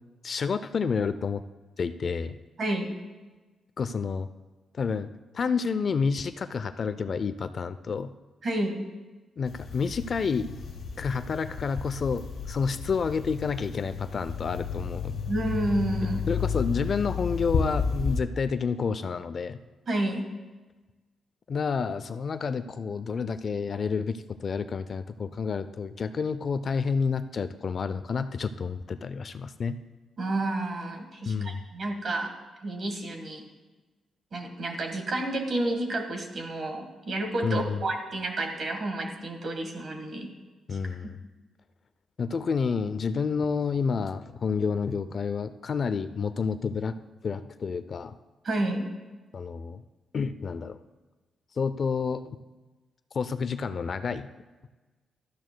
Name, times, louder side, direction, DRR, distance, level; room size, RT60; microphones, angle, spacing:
voice 1, 0.2-1.4 1.8-2.3 3.8-4.3 4.7-5.1 5.3-8.1 9.4-10.5 11.0-15.1 16.3-19.6 21.5-29.8 31.3-31.6 37.4-37.8 40.7-41.2 42.2-47.0 47.2-48.2 49.3-49.8 50.1-50.8 51.6-52.2 53.1-54.3, left 5 dB, 40° left, 12 dB, 0.3 m, -29 dB
voice 2, 2.6-2.9 8.4-8.8 15.3-16.2 19.9-20.2 30.2-32.3 32.6-33.5 34.3-40.3 40.7-41.1 48.4-48.9, right 2 dB, 40° right, 4 dB, 1.5 m, -30 dB
sound 1, 9.4-18.2, left 5 dB, 55° left, 1.9 m, -32 dB
16.5 x 12.5 x 2.2 m, 1.2 s
wide cardioid pair, 165°, 0 cm